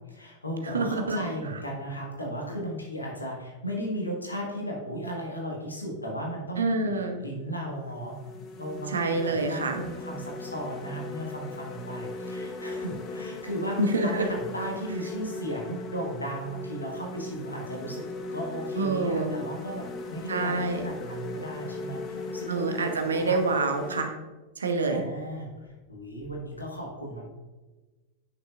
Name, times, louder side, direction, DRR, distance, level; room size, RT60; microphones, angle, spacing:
voice 1, 0.1-8.2 8.6-18.1 18.3-22.8 23.1-23.4 24.9-27.2, equal, 80° left, -1 dB, 1.4 m, -36 dB
voice 2, 0.7-1.2 6.6-7.2 8.9-9.8 13.8-14.3 18.8-19.3 20.3-20.8 22.5-24.1 24.6-25.0, right 3 dB, 70° right, 4 dB, 0.9 m, -26 dB
sound 1, 7.1-7.3 7.8-24.0, left 3 dB, 35° left, 0.8 m, -38 dB
9.3 x 5.9 x 2.4 m, 1.2 s
figure-of-eight pair, 90°, 0 cm